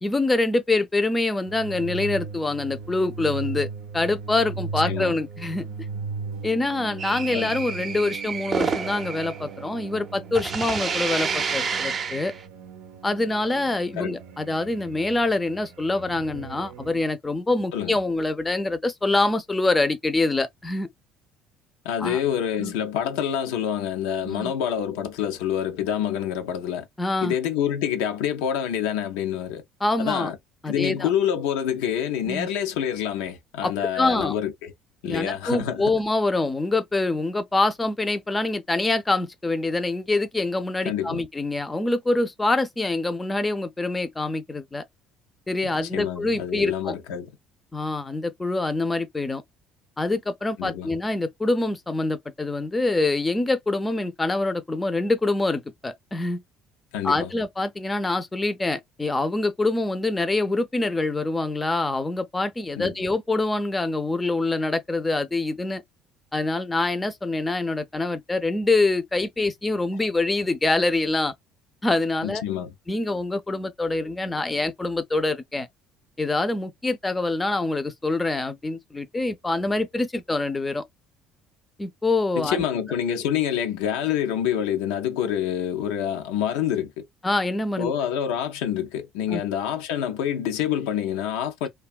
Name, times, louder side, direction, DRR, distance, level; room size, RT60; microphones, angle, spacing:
voice 1, 0.0-3.7 3.9-5.6 6.4-12.3 13.0-20.9 22.0-22.2 22.6-22.7 24.2-24.5 27.0-27.3 29.8-30.3 30.6-31.1 32.3-32.5 33.6-34.3 35.0-44.8 45.5-46.9 47.7-49.4 50.0-56.4 57.0-65.8 66.3-71.3 71.8-72.4 72.9-75.7 76.2-80.8 81.8-82.6 87.2-87.9 89.3-89.4, left 2 dB, 15° left, 0.5 m, -25 dB
sound 1, 1.5-17.0, right 5 dB, 85° right, 0.5 m, -37 dB
sound 2, 7.0-10.1 10.4-12.4, right 5 dB, 40° right, 0.5 m, -29 dB
voice 2, 21.8-26.9 27.2-29.6 30.0-30.4 30.7-34.7 35.0-36.0 40.8-41.2 45.6-47.3 50.6-50.9 56.9-57.3 62.8-62.9 72.2-72.7 82.4-87.1 87.8-91.7, left 9 dB, 90° left, 0.5 m, -27 dB
2.7 x 2.3 x 2.3 m
supercardioid pair, 90°, 0 cm